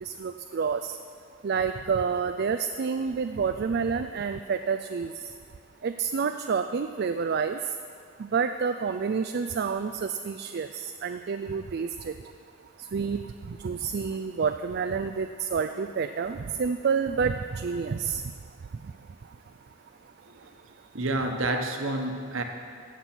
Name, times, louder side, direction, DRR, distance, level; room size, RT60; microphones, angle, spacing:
voice 1, 0.0-1.0 1.4-5.1 5.8-7.6 8.2-12.1 12.9-13.2 13.6-18.2, right 5 dB, 50° right, 7 dB, 0.4 m, -28 dB
voice 2, 20.9-22.4, right 2 dB, 65° right, 4 dB, 1.2 m, -29 dB
16.5 x 7.4 x 6.0 m, 2.3 s
head